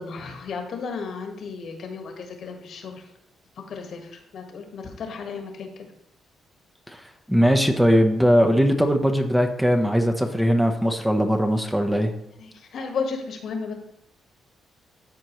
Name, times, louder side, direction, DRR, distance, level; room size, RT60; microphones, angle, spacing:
voice 1, 0.0-3.0 3.7-5.7 12.4-13.7, left 5 dB, 65° left, 4 dB, 1.4 m, -33 dB
voice 2, 7.3-12.1, equal, 5° right, 5 dB, 0.8 m, -20 dB
12.5 x 4.3 x 3.1 m, 0.75 s
cardioid pair, 90°, 0 cm